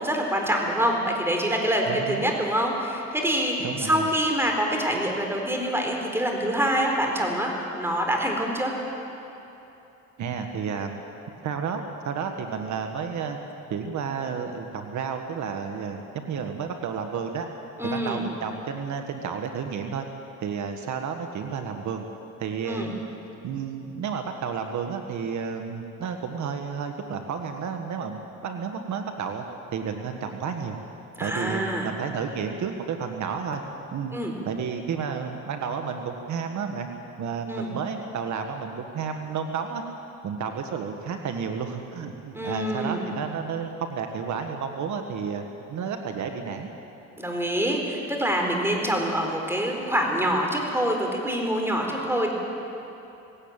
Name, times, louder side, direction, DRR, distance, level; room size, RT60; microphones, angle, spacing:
voice 1, 0.0-8.7 17.8-18.2 22.7-22.9 31.2-31.9 34.1-34.3 37.5-37.7 42.3-43.0 47.2-52.3, equal, 10° right, 1 dB, 4.3 m, -25 dB
voice 2, 1.9-2.2 3.6-4.1 10.2-11.0 11.4-13.4 13.7-17.5 17.8-20.0 20.4-22.0 22.4-23.0 23.4-30.8 31.2-33.6 33.9-34.1 34.4-36.9 37.2-39.8 40.2-45.4 45.7-46.7, right 6 dB, 70° right, 5 dB, 1.5 m, -31 dB
18.0 x 17.5 x 8.9 m, 3.0 s
cardioid pair, 90°, 30 cm